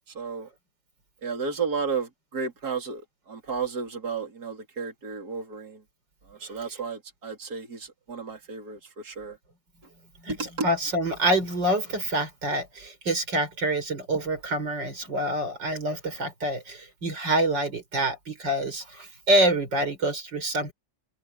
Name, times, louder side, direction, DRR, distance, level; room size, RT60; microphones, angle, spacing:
voice 1, 0.1-0.5 1.2-5.8 6.3-9.4 10.3-10.7, right 5 dB, 55° right, 4.2 m, -33 dB
voice 2, 10.2-20.7, right 1 dB, 75° right, 5.7 m, -26 dB
omnidirectional pair, 1.9 m